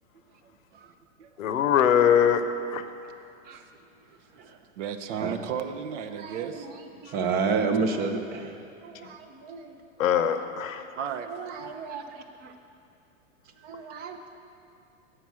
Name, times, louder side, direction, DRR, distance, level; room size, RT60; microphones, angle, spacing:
voice 1, 1.4-2.4 2.7-2.8 10.0-10.8, left 9 dB, 85° left, 9 dB, 0.7 m, -22 dB
voice 2, 4.8-6.7 11.0-11.3 11.6-11.7, right 8 dB, 65° right, 9 dB, 0.7 m, -34 dB
voice 3, 6.1-6.7 7.0-9.8 11.3-12.5 13.6-14.2, right 4 dB, 25° right, 6 dB, 0.5 m, -31 dB
8.2 x 5.8 x 6.1 m, 2.5 s
hypercardioid pair, 125°, 39 cm